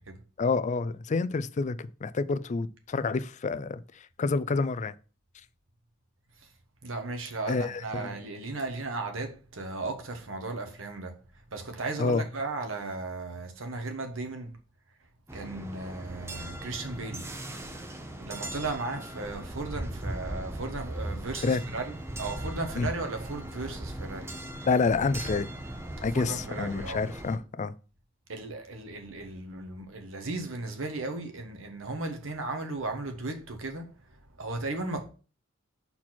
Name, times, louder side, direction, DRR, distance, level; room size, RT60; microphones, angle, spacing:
voice 1, 0.4-3.8 4.2-4.9 7.5-8.1 12.0-12.2 21.4-21.6 22.7-22.9 24.6-25.5 26.0-27.7, left 4 dB, 35° left, 0.4 m, -28 dB
voice 2, 6.8-11.1 11.5-14.5 15.3-17.2 18.2-21.8 22.2-24.3 26.1-27.0 28.3-33.8 34.4-35.1, right 3 dB, 75° right, 1.3 m, -35 dB
sound 1, 15.3-27.4, right 1 dB, 15° right, 0.7 m, -38 dB
5.9 x 4.3 x 4.3 m
head